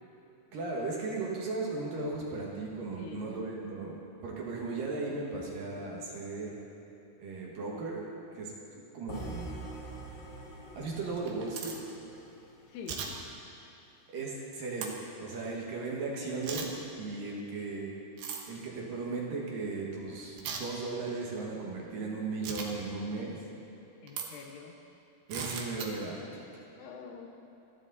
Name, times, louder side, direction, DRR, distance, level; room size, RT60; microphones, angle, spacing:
voice 1, 0.5-6.6 7.2-8.0 8.3-9.5 10.7-11.8 14.1-18.0 18.5-23.4 25.3-26.3, right 3 dB, 60° right, -3 dB, 3.0 m, -36 dB
voice 2, 3.0-3.3 12.7-13.2 24.0-24.8 26.7-27.4, left 6 dB, 75° left, 3 dB, 3.0 m, -46 dB
sound 1, 9.1-13.2, right 2 dB, 55° left, 1.3 m, -45 dB
sound 2, 11.1-11.8 12.9-13.1 14.8-14.9 16.4-16.7 18.2-18.4 20.4-20.6 22.4-22.7 24.1-24.3 25.3-25.9, right 6 dB, 75° right, 3.3 m, -37 dB
29.0 x 10.5 x 4.1 m, 2.8 s
omnidirectional pair, 4.9 m